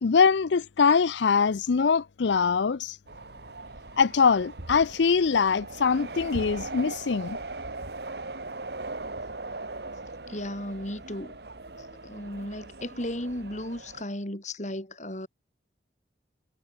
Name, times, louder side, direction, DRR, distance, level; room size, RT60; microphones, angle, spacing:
voice 1, 0.0-3.0 4.0-7.4, left 5 dB, 70° left, 0.5 m, -23 dB
sound 1, 3.1-14.0, right 2 dB, 60° right, 1.9 m, -40 dB
voice 2, 10.3-11.3 11.8-15.3, left 1 dB, 40° left, 4.2 m, -35 dB
head